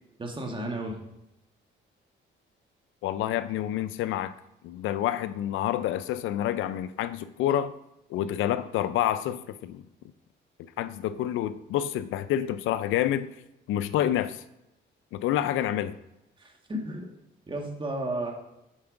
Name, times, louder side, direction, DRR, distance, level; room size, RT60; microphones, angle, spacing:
voice 1, 0.2-1.0 16.4-17.1 17.5-18.3, right 1 dB, 25° right, 1 dB, 1.6 m, -33 dB
voice 2, 3.0-4.3 4.6-7.7 8.1-9.8 10.8-13.3 13.7-14.4 15.1-15.9, left 11 dB, 85° left, 13 dB, 0.4 m, -28 dB
7.3 x 4.4 x 4.9 m, 0.89 s
cardioid pair, 90°, 20 cm